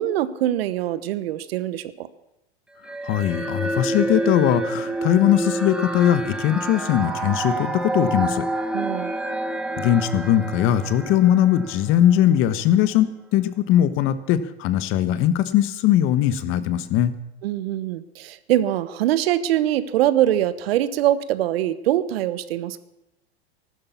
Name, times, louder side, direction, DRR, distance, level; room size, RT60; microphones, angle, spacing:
voice 1, 0.0-2.1 8.7-9.1 17.4-22.8, right 12 dB, 70° right, 15 dB, 1.1 m, -23 dB
sound 1, 2.8-12.4, right 2 dB, 5° right, 1.7 m, -28 dB
voice 2, 3.0-8.5 9.8-17.1, left 11 dB, 40° left, 13 dB, 1.3 m, -20 dB
14.5 x 12.0 x 7.1 m, 0.92 s
hypercardioid pair, 120°, 32 cm